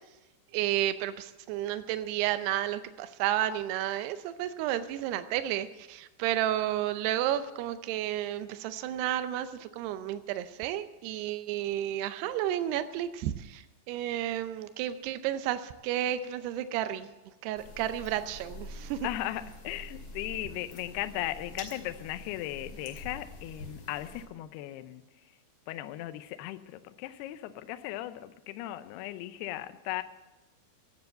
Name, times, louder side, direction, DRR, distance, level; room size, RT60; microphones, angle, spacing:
voice 1, 0.5-17.1 17.4-19.1, right 12 dB, 90° right, 10 dB, 2.3 m, -32 dB
sound 1, 17.6-24.3, left 1 dB, 35° left, 2.4 m, -46 dB
voice 2, 19.0-25.0 25.7-30.0, left 14 dB, 85° left, 11 dB, 2.3 m, -37 dB
15.0 x 9.5 x 7.9 m, 1.1 s
omnidirectional pair, 5.6 m